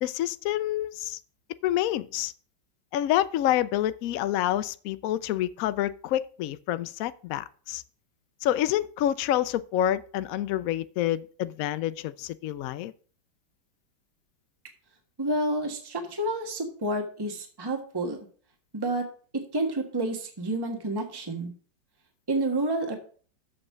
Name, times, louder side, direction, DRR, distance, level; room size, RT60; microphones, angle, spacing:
voice 1, 0.0-1.2 1.6-2.3 2.9-7.8 8.4-12.9, left 12 dB, 85° left, 0.7 m, -28 dB
voice 2, 15.2-18.3 18.7-19.1 19.3-21.5 22.3-23.0, right 1 dB, 15° right, 1.3 m, -29 dB
7.2 x 5.4 x 7.3 m
omnidirectional pair, 2.0 m